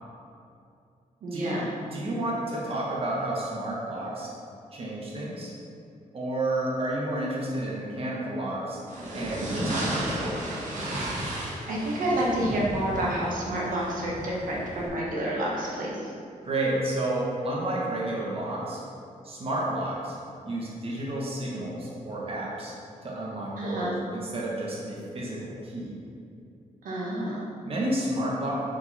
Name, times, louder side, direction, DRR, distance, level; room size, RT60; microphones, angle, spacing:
voice 1, 1.2-1.7 11.7-16.1 23.6-23.9 26.8-27.5, right 1 dB, 80° right, -5 dB, 1.4 m, -29 dB
voice 2, 1.9-4.3 4.7-5.5 6.1-8.8 9.1-10.3 16.4-18.8 19.2-20.2 20.4-22.7 23.0-25.9 27.6-28.5, right 1 dB, 45° right, -4 dB, 1.3 m, -31 dB
sound 1, 8.9-14.9, right 1 dB, 60° right, 1.6 m, -33 dB
6.6 x 5.0 x 4.2 m, 2.6 s
cardioid pair, 105°, 14 cm